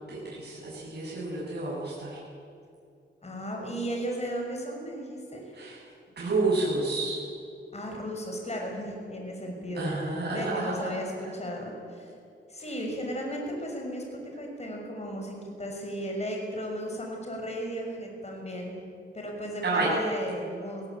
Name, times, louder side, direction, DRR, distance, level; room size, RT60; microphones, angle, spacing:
voice 1, 0.1-2.2 5.5-5.8 6.2-7.2 9.7-10.9 19.6-19.9, right 3 dB, 55° right, -7 dB, 7.9 m, -30 dB
voice 2, 3.2-5.4 7.7-9.9 10.3-12.1 12.5-18.8 19.1-20.8, equal, 35° left, 1 dB, 6.0 m, -35 dB
20.0 x 19.0 x 8.8 m, 2.5 s
cardioid pair, 75°, 20 cm